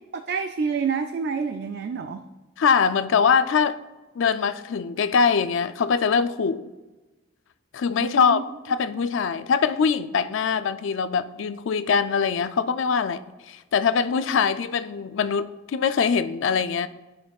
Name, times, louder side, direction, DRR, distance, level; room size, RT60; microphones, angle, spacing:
voice 1, 0.1-2.2 8.0-8.4, right 5 dB, 60° right, 8 dB, 0.4 m, -28 dB
voice 2, 2.6-3.8 4.2-6.7 7.7-8.4 8.7-16.9, left 6 dB, 85° left, 12 dB, 0.4 m, -23 dB
15.0 x 5.3 x 2.3 m, 1.2 s
head